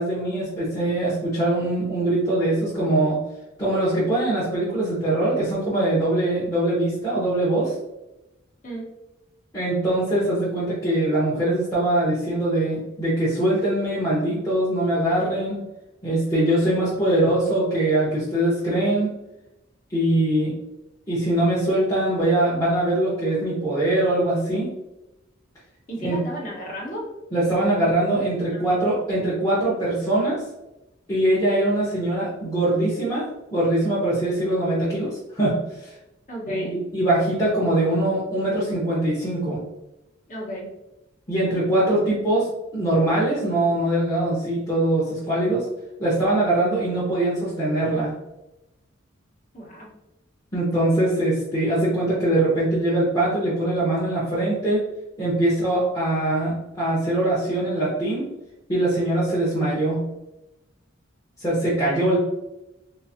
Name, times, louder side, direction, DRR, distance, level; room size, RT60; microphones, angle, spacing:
voice 1, 0.0-3.2 3.6-7.7 9.5-15.6 16.0-19.1 19.9-20.5 21.1-24.7 26.0-26.2 27.3-30.4 31.1-35.9 36.5-39.6 41.3-42.5 42.7-45.6 46.0-48.1 50.5-54.9 55.2-58.3 58.7-60.0 61.4-62.2, right 1 dB, 15° left, -10 dB, 0.9 m, -22 dB
voice 2, 25.9-27.0 28.5-28.7 36.3-36.7 40.3-40.7 49.5-49.9, equal, 40° left, -3 dB, 1.1 m, -33 dB
4.0 x 2.5 x 2.7 m, 0.95 s
head